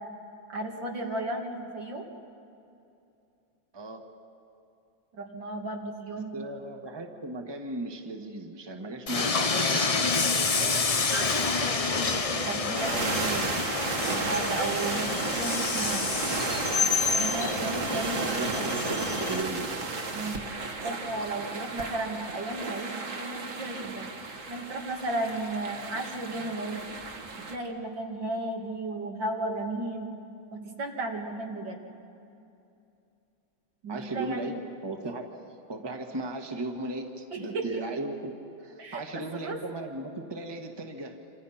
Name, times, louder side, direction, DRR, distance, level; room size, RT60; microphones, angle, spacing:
voice 1, 0.5-2.0 5.1-6.4 11.1-13.4 14.0-16.0 17.2-18.7 20.1-20.4 20.8-24.1 24.5-26.8 27.5-30.1 30.5-31.8 33.8-34.5 37.3-37.6 38.8-39.6, right 2 dB, 75° right, 1 dB, 3.0 m, -34 dB
voice 2, 3.7-4.0 6.3-9.9 17.6-18.1 18.4-19.7 26.3-26.5 33.9-35.3 35.7-38.3 38.6-41.2, right 2 dB, 15° right, 3 dB, 1.5 m, -36 dB
Train, 9.1-19.4, left 4 dB, 45° left, 0.4 m, -28 dB
sound 1, 12.8-27.6, right 3 dB, 45° right, 1.8 m, -33 dB
27.5 x 26.5 x 5.8 m, 2.7 s
omnidirectional pair, 2.0 m